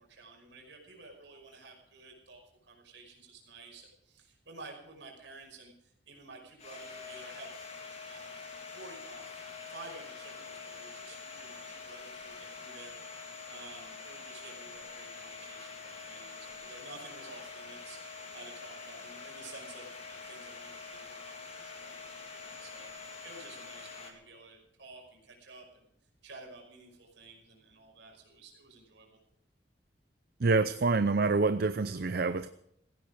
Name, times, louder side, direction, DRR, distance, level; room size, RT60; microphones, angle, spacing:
voice 1, 0.0-7.7 8.1-9.4 9.7-25.9 26.2-29.2, right 3 dB, 70° right, 1 dB, 5.4 m, -52 dB
Domestic sounds home sounds, 6.6-24.1, left 4 dB, 35° left, 3.1 m, -45 dB
voice 2, 30.4-32.5, right 3 dB, 55° right, 12 dB, 0.6 m, -27 dB
17.5 x 15.5 x 5.0 m, 0.76 s
head